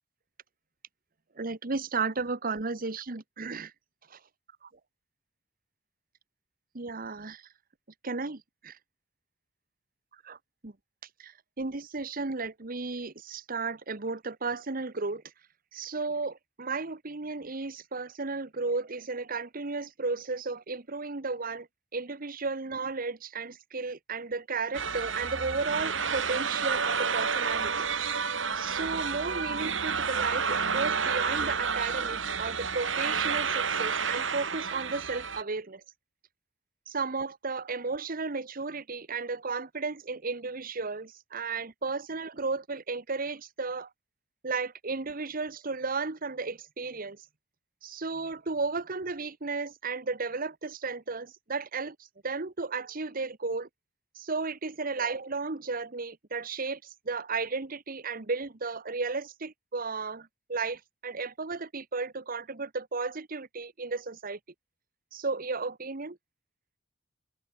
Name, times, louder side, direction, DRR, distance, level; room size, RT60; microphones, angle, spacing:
voice 1, 1.4-3.7 6.7-7.4 8.0-8.8 10.3-10.4 10.6-10.7 11.2-15.2 15.7-21.7 21.9-27.7 28.2-28.3 28.5-35.8 36.9-43.9 44.4-47.2 47.8-52.0 52.2-53.7 54.2-64.4 65.1-66.2, right 4 dB, 45° right, 1.3 m, -34 dB
sound 1, 24.7-35.4, right 6 dB, 75° right, 4.0 m, -30 dB
open air
head